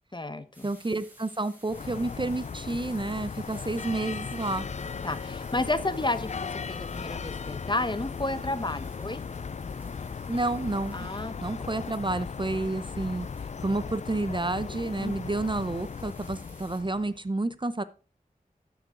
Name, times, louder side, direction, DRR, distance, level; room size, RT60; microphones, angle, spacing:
voice 1, 0.1-0.7 5.0-9.2 10.9-11.3 11.6-11.7 15.0-15.1, left 2 dB, 30° left, 12 dB, 0.9 m, -31 dB
sound 1, 0.5-16.8, right 1 dB, 10° right, 4.7 m, -56 dB
voice 2, 0.6-4.7 10.3-11.1 11.4-13.3 13.6-17.8, right 2 dB, 30° right, 14 dB, 0.6 m, -30 dB
sound 2, 1.7-17.2, left 5 dB, 50° left, 0.4 m, -37 dB
13.0 x 6.0 x 3.7 m, 0.36 s
wide cardioid pair, 40°, 16 cm